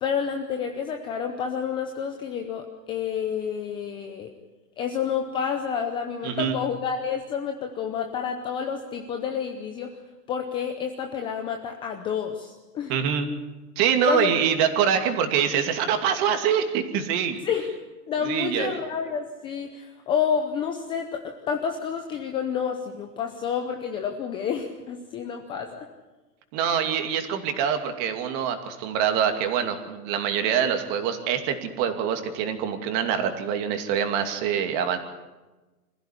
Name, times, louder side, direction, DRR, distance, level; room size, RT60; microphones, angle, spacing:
voice 1, 0.0-4.3 4.8-9.9 10.3-12.9 14.1-14.3 17.4-17.7 18.1-25.9, left 7 dB, 10° left, 4 dB, 0.7 m, -29 dB
voice 2, 6.2-6.6 12.9-13.3 13.8-17.4 18.2-18.8 26.5-35.0, right 8 dB, 30° right, 6 dB, 2.7 m, -25 dB
26.0 x 15.5 x 9.8 m, 1.2 s
hypercardioid pair, 155°, 47 cm